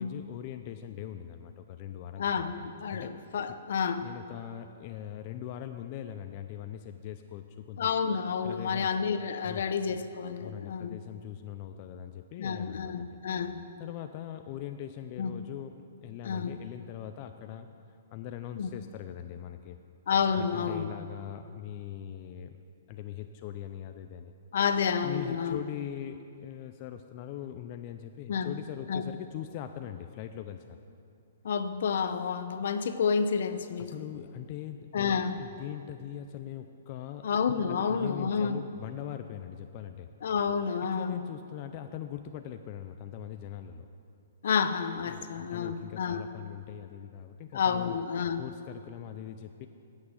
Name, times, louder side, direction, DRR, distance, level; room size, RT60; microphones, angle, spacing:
voice 1, 0.0-2.5 2.9-3.1 3.5-3.6 4.0-7.9 8.4-8.9 9.4-9.6 10.4-13.2 13.8-15.7 16.0-19.8 20.4-22.6 22.9-24.3 25.0-30.8 33.8-37.2 37.7-40.1 40.9-43.9 45.1-48.0 48.4-49.7, left 10 dB, 35° left, 7 dB, 0.4 m, -41 dB
voice 2, 2.2-4.1 7.8-11.0 12.4-13.6 15.2-15.3 16.2-16.6 18.6-18.7 20.1-20.9 24.5-25.6 28.3-28.5 28.9-29.0 31.4-34.1 34.9-35.4 37.2-38.6 40.2-41.3 44.4-46.3 47.5-48.4, left 6 dB, 65° left, 11 dB, 0.7 m, -30 dB
9.7 x 8.2 x 7.3 m, 2.5 s
hypercardioid pair, 155°, 0 cm